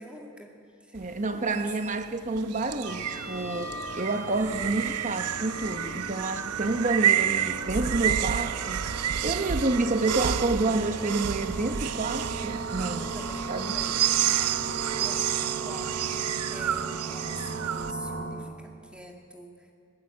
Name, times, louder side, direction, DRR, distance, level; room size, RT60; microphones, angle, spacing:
voice 1, 0.0-1.9 13.0-14.0 15.0-19.7, equal, 5° right, 1 dB, 2.1 m, -45 dB
voice 2, 0.9-8.8 9.2-13.1 13.5-13.7, right 2 dB, 35° right, 8 dB, 0.9 m, -29 dB
sound 1, 1.0-17.9, right 10 dB, 85° right, 0.5 m, -30 dB
sound 2, 2.8-18.2, right 3 dB, 70° right, 5.2 m, -37 dB
21.0 x 17.5 x 8.4 m, 2.4 s
head